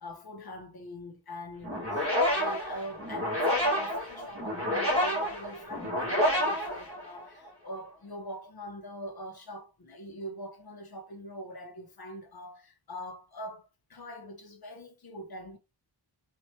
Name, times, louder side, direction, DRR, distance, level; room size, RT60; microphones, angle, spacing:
voice 1, 0.0-15.6, equal, 50° left, 1.1 m, -43 dB
sound 1, 1.6-7.5, equal, 25° right, 2.0 m, -29 dB
4.3 x 2.8 x 3.3 m
wide cardioid pair, 125°, 47 cm